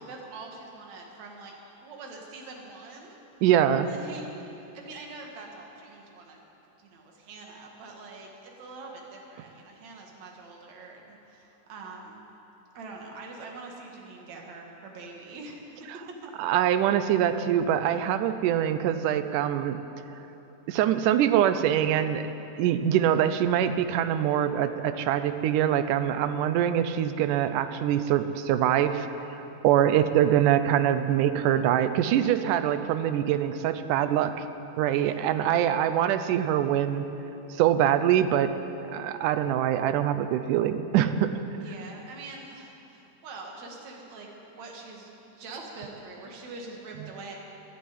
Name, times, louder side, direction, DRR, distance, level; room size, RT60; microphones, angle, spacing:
voice 1, 0.0-3.2 3.8-6.4 6.8-12.2 12.7-16.2 34.9-35.2 41.6-47.4, right 3 dB, 65° right, 0 dB, 3.0 m, -44 dB
voice 2, 3.4-3.9 16.4-19.8 20.7-22.2 22.6-34.5 34.8-37.1 37.6-38.5 38.9-41.4, right 10 dB, 90° right, 11 dB, 2.2 m, -24 dB
13.0 x 11.5 x 9.3 m, 3.0 s
omnidirectional pair, 3.6 m